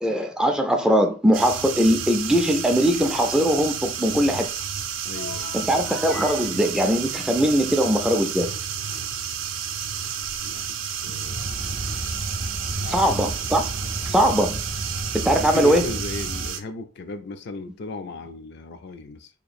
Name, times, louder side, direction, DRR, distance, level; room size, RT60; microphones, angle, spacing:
voice 1, 0.0-4.5 5.5-8.5 11.1-11.2 12.9-13.6 14.1-14.6 15.1-15.9, equal, 5° right, 0.4 m, -21 dB
sound 1, 1.3-16.6, right 8 dB, 90° right, 0.5 m, -31 dB
voice 2, 4.1-4.4 5.0-5.5 10.4-11.5 12.7-13.0 14.0-14.3 15.4-19.3, left 3 dB, 60° left, 0.4 m, -36 dB
sound 2, 5.1-8.7, left 5 dB, 85° left, 1.3 m, -42 dB
sound 3, 11.2-16.5, right 1 dB, 50° right, 0.7 m, -33 dB
2.9 x 2.5 x 4.1 m
head